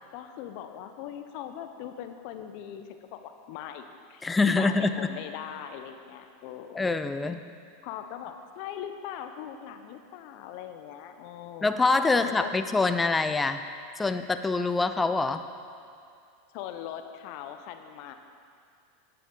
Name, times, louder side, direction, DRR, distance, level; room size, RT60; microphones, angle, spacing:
voice 1, 0.1-6.9 7.8-11.7 12.1-12.5 16.5-18.1, left 10 dB, 55° left, 7 dB, 0.8 m, -40 dB
voice 2, 4.2-5.0 6.7-7.4 11.6-13.6 14.0-15.4, left 3 dB, 15° left, 9 dB, 0.6 m, -25 dB
18.0 x 6.8 x 3.9 m, 2.4 s
figure-of-eight pair, 85°, 0 cm